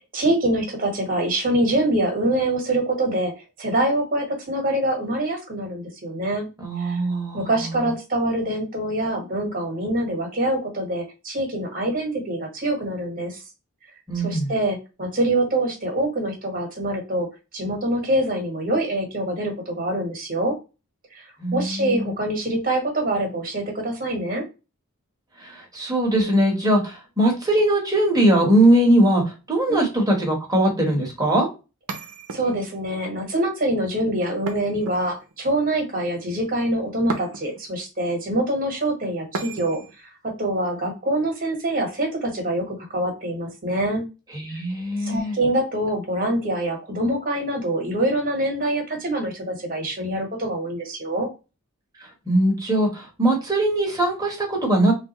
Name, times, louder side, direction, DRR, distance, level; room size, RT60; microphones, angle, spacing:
voice 1, 0.1-3.3 3.6-6.5 6.8-7.0 7.3-13.4 14.2-17.3 17.5-20.6 21.1-24.4 29.7-29.8 32.3-39.8 40.2-44.0 44.5-44.6 45.0-51.3, right 1 dB, 40° right, 2 dB, 1.3 m, -25 dB
voice 2, 6.6-7.9 14.1-14.5 21.4-22.2 25.4-31.5 44.3-45.4 52.3-54.9, right 1 dB, 15° right, 0 dB, 1.1 m, -21 dB
sound 1, 31.9-32.8 34.5-35.4 37.1-37.7 39.3-40.0, right 3 dB, 75° right, 0.7 m, -34 dB
3.4 x 2.5 x 2.9 m, 0.29 s
head